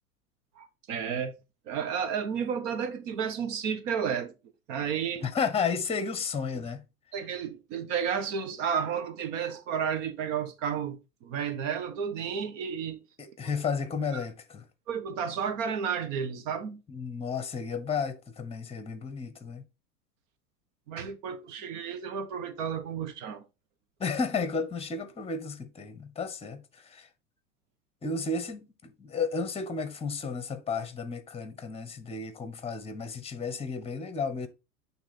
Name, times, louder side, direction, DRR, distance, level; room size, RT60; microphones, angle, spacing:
voice 1, 0.6-1.3 1.7-4.3 4.7-5.2 7.1-13.0 14.1-14.2 14.9-16.8 20.9-23.4, right 7 dB, 55° right, 1.2 m, -32 dB
voice 2, 5.2-6.8 13.2-14.6 16.9-19.6 21.6-21.7 24.0-27.1 28.0-34.5, left 5 dB, 15° left, 1.1 m, -33 dB
8.7 x 3.5 x 4.2 m
hypercardioid pair, 100°, 46 cm